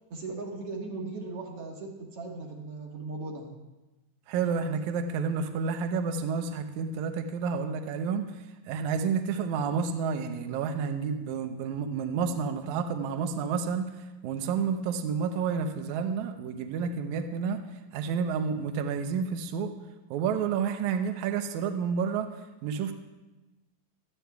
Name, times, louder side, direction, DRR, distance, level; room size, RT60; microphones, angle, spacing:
voice 1, 0.1-3.5, right 3 dB, 55° right, 0 dB, 1.7 m, -38 dB
voice 2, 4.3-8.3 8.7-13.9 14.2-17.6 17.9-19.7 20.1-22.3 22.6-22.9, right 6 dB, 75° right, 6 dB, 1.8 m, -30 dB
17.0 x 13.0 x 2.3 m, 1.1 s
omnidirectional pair, 4.2 m